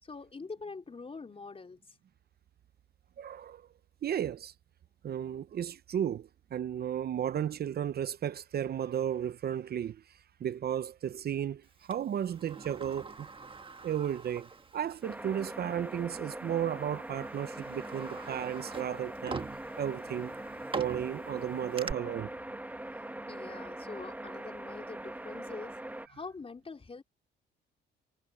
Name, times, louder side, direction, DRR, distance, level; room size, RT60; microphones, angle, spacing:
voice 1, 0.0-2.0 23.3-25.8 26.1-27.0, left 4 dB, 30° left, 3.9 m, -44 dB
voice 2, 3.2-3.7 4.0-4.5 5.0-13.3 13.8-19.4 19.8-20.3 20.7-22.4, right 9 dB, 55° right, 0.7 m, -34 dB
Sliding door, 11.9-15.1 15.5-15.6 16.5-16.7 17.2-21.9, right 4 dB, 25° right, 1.6 m, -44 dB
sound 1, 15.0-26.1, right 1 dB, 10° right, 1.3 m, -42 dB
cardioid pair, 90°, 20 cm